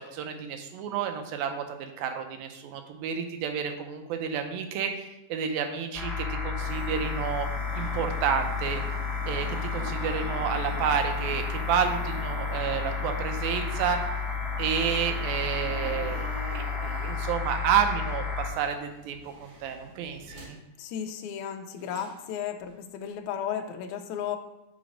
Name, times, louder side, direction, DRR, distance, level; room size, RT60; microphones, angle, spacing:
voice 1, 0.0-7.5 7.8-8.8 9.3-14.0 14.6-20.6, right 7 dB, 80° right, 6 dB, 2.5 m, -30 dB
sound 1, 5.9-18.5, left 5 dB, ahead, 1.5 m, -32 dB
sound 2, 6.6-20.5 21.8-22.2 22.7-22.8, right 1 dB, 60° right, 3.0 m, -43 dB
voice 2, 20.8-24.4, left 9 dB, 90° left, 4 dB, 1.7 m, -34 dB
5.7 x 4.1 x 6.1 m, 0.97 s
omnidirectional pair, 4.1 m